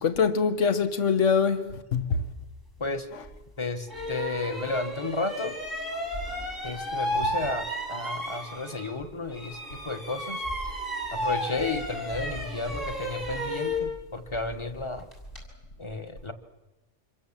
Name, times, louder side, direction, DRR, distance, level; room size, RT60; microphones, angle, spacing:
voice 1, 0.0-2.2, left 6 dB, 80° left, 1.6 m, -24 dB
sound 1, 3.2-3.4 3.9-9.0 9.3-15.5, equal, 50° left, 6.9 m, -33 dB
voice 2, 3.6-5.6 6.6-10.4 11.1-15.1 15.8-16.3, left 3 dB, 25° left, 1.5 m, -33 dB
27.0 x 23.0 x 7.4 m
omnidirectional pair, 1.2 m